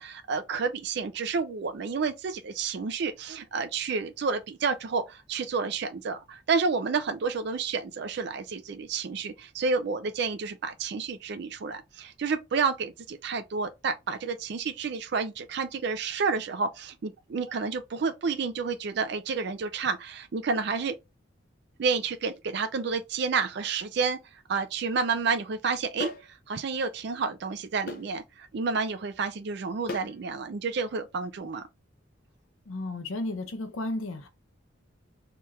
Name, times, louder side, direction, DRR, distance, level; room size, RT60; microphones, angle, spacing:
voice 1, 0.0-20.9 21.8-24.2 24.5-26.1 26.5-31.6, right 5 dB, 55° right, 0.4 m, -30 dB
sound 1, 26.0-26.3 27.9-28.1 29.9-30.1, left 2 dB, 45° left, 0.5 m, -35 dB
voice 2, 32.7-34.3, left 2 dB, 90° left, 0.7 m, -33 dB
2.9 x 2.3 x 3.1 m
head